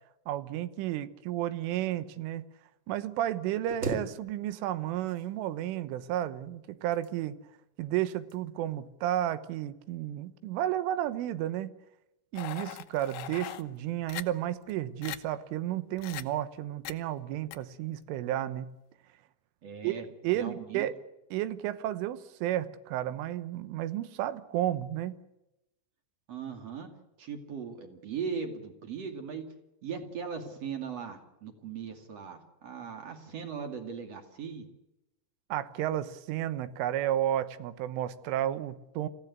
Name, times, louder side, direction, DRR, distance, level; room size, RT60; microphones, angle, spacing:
voice 1, 0.3-2.5 2.9-7.4 7.8-11.8 12.3-18.7 19.8-21.0 21.3-25.2 35.5-39.1, right 12 dB, 80° right, 13 dB, 3.6 m, -32 dB
sound 1, 3.7-4.7 5.0-5.8 6.7-7.5 8.1-8.4 8.9-9.1, right 2 dB, 25° right, 1.7 m, -39 dB
sound 2, 12.4-13.6 14.1-14.2 14.7-14.8 15.0-15.2 16.0-16.2 16.9-17.0 17.5-17.6, left 14 dB, 75° left, 2.5 m, -39 dB
voice 2, 19.6-20.1 20.3-20.9 26.3-26.9 27.2-29.5 29.8-34.7, right 6 dB, 45° right, 6 dB, 2.5 m, -39 dB
27.0 x 16.0 x 9.4 m, 0.94 s
omnidirectional pair, 5.7 m